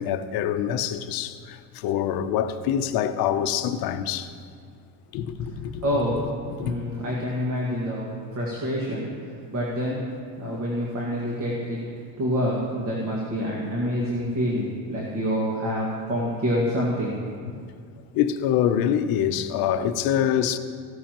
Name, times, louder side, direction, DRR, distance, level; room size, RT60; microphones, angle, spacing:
voice 1, 0.0-4.3 5.1-5.8 6.6-6.7 17.5-17.7 18.1-20.6, left 9 dB, 55° left, 0.7 m, -25 dB
voice 2, 5.8-6.2 6.6-9.1 9.5-10.1 10.4-11.8 12.2-17.2, equal, 40° right, 1.9 m, -27 dB
15.5 x 12.5 x 3.0 m
cardioid pair, 155°, 44 cm